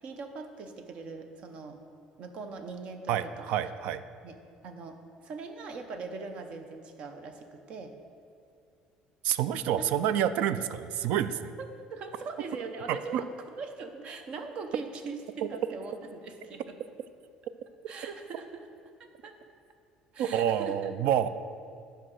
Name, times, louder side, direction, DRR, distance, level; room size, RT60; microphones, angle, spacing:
voice 1, 0.0-1.8 2.2-3.5 4.2-4.4 4.6-5.0 5.2-7.9 9.7-9.9 11.6-13.3 13.6-16.8 17.9-18.7 19.0-19.3 20.1-20.9, right 4 dB, 45° right, 6 dB, 0.8 m, -41 dB
voice 2, 3.1-4.0 9.2-11.5 12.9-13.2 20.2-21.3, right 10 dB, 65° right, 13 dB, 0.4 m, -28 dB
10.5 x 4.9 x 6.3 m, 2.4 s
cardioid pair, 160°, 2 cm